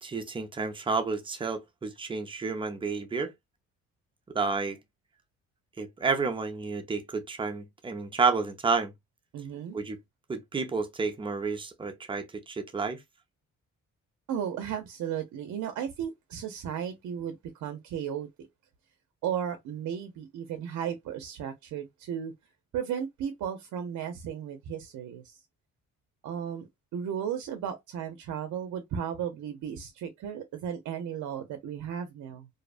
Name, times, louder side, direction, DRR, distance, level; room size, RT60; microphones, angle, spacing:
voice 1, 0.0-3.3 4.3-4.8 5.8-8.9 9.7-10.0 10.3-13.0, right 4 dB, 15° right, 0.6 m, -30 dB
voice 2, 9.3-9.8 14.3-18.3 19.2-22.3 22.7-25.4 26.2-32.5, right 8 dB, 70° right, 0.6 m, -35 dB
2.7 x 2.1 x 2.4 m
cardioid pair, 90°, 30 cm